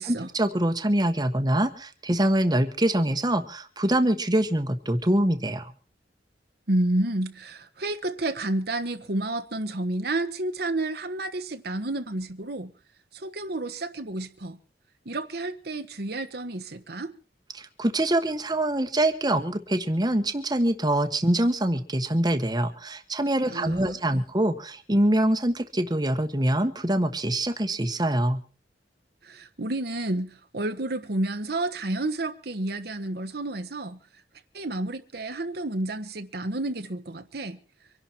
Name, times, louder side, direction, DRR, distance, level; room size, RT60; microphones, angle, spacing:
voice 1, 0.1-5.7 17.5-28.4, right 1 dB, 25° right, 1.3 m, -24 dB
voice 2, 6.7-12.7 13.1-14.6 15.0-17.1 23.4-24.2 29.2-34.0 34.5-37.6, right 2 dB, 60° right, 1.3 m, -30 dB
25.0 x 11.5 x 4.5 m
head